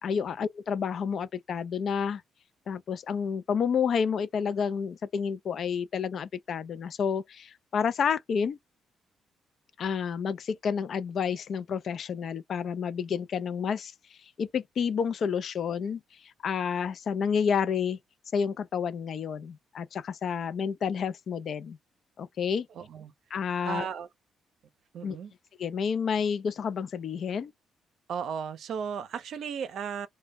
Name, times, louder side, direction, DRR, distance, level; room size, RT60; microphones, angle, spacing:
voice 1, 0.0-2.2 2.7-8.6 9.8-16.0 16.4-18.0 18.3-21.8 22.2-22.7 23.3-23.9 25.0-25.2 25.6-27.5, left 6 dB, 60° left, 0.4 m, -30 dB
voice 2, 22.7-23.1 23.6-24.1 24.9-25.3 28.1-30.1, right 7 dB, 70° right, 0.5 m, -35 dB
2.1 x 2.1 x 3.3 m
cardioid pair, 90°, 0 cm